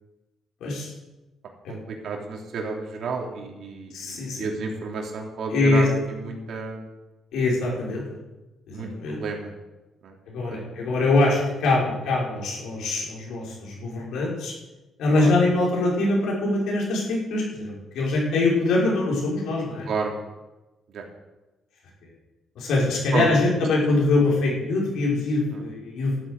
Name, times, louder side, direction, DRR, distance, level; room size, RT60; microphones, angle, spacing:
voice 1, 0.6-0.9 1.6-1.7 3.9-4.5 5.5-5.9 7.3-8.0 8.7-9.2 10.3-14.5 15.0-19.9 22.6-26.1, left 2 dB, 80° left, -3 dB, 5.6 m, -23 dB
voice 2, 1.7-6.9 8.7-8.9 9.2-9.5 10.0-10.2 10.5-10.6 11.8-11.9 15.1-15.4 19.9-20.1 20.9-21.0 23.1-23.3 25.5-25.6, right 4 dB, 65° right, 1 dB, 3.3 m, -31 dB
12.5 x 9.0 x 8.2 m, 1.1 s
cardioid pair, 90°, 0 cm